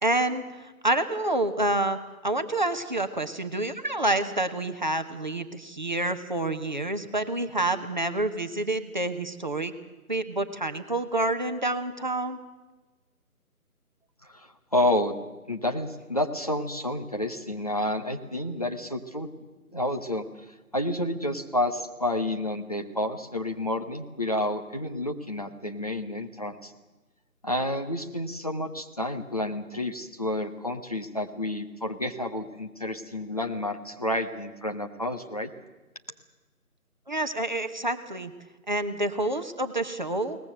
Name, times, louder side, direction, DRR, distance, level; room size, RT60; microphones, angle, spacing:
voice 1, 0.0-0.4 0.8-9.7 10.1-12.4 37.1-38.3 38.7-40.4, right 2 dB, 30° right, 8 dB, 1.0 m, -28 dB
voice 2, 14.2-15.2 15.5-19.3 19.7-20.2 20.7-26.7 27.4-35.5, left 1 dB, 25° left, 3 dB, 1.0 m, -30 dB
22.0 x 19.0 x 7.8 m, 1.2 s
figure-of-eight pair, 160°, 45 cm